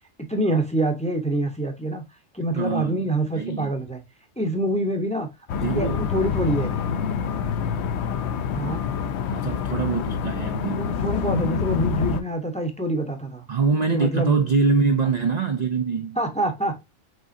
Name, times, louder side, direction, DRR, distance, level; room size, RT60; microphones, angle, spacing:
voice 1, 0.2-2.0 2.3-4.0 4.4-6.8 8.5-8.8 10.7-13.5 13.9-14.4 16.2-16.8, right 1 dB, 5° left, 0.6 m, -26 dB
voice 2, 2.4-3.7 5.6-6.0 9.3-10.8 13.5-16.2, right 4 dB, 55° right, 0.4 m, -24 dB
sound 1, 5.5-12.2, left 6 dB, 65° left, 0.8 m, -26 dB
5.4 x 3.6 x 2.5 m
omnidirectional pair, 1.4 m